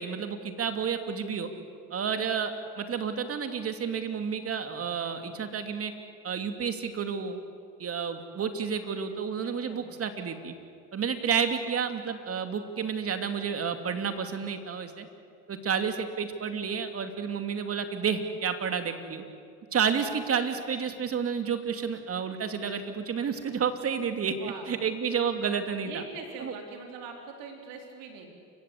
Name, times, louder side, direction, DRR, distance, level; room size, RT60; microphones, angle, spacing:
voice 1, 0.0-1.5 1.9-5.9 6.2-7.4 7.8-10.5 10.9-15.1 15.5-19.2 19.7-26.0 26.4-26.5, right 6 dB, 45° right, 7 dB, 2.6 m, -30 dB
voice 2, 9.4-9.8 24.4-24.7 25.8-28.3, right 5 dB, 80° right, 3 dB, 4.2 m, -42 dB
29.0 x 16.5 x 8.5 m, 2.3 s
supercardioid pair, 85°, 33 cm